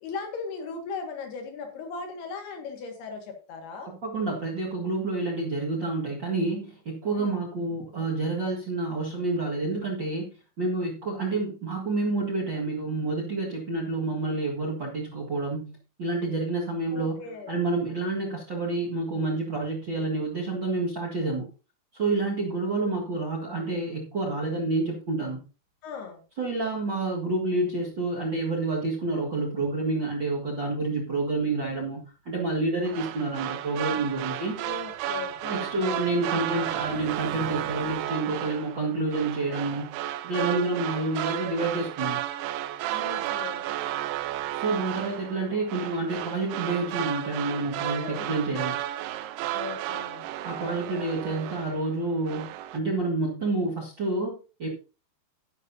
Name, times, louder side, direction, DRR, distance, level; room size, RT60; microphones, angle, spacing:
voice 1, 0.0-3.9 7.1-7.4 16.9-17.5 25.8-26.2 34.6-35.8 42.9-43.6 48.0-48.3 49.5-50.2, left 5 dB, 75° left, 4 dB, 3.8 m, -38 dB
voice 2, 3.9-10.3 10.6-17.2 17.5-21.5 21.9-25.4 26.4-34.6 35.5-39.9 40.2-42.2 44.5-48.8 50.4-54.7, right 2 dB, 45° right, -3 dB, 1.5 m, -29 dB
sound 1, 31.9-38.0, right 7 dB, 65° right, 2.2 m, -46 dB
sound 2, 32.8-52.0 52.3-52.8, right 13 dB, 85° right, 2.7 m, -33 dB
12.0 x 11.0 x 2.7 m, 0.35 s
omnidirectional pair, 4.7 m